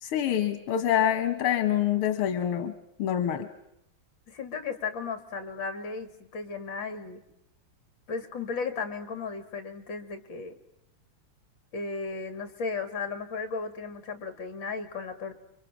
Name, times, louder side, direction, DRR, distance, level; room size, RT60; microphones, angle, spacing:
voice 1, 0.0-2.7 3.0-3.5, left 10 dB, 85° left, 9 dB, 2.1 m, -26 dB
voice 2, 4.3-7.2 8.1-10.5 11.7-15.3, left 4 dB, 60° left, 8 dB, 3.1 m, -35 dB
29.5 x 24.5 x 6.1 m, 0.81 s
omnidirectional pair, 2.3 m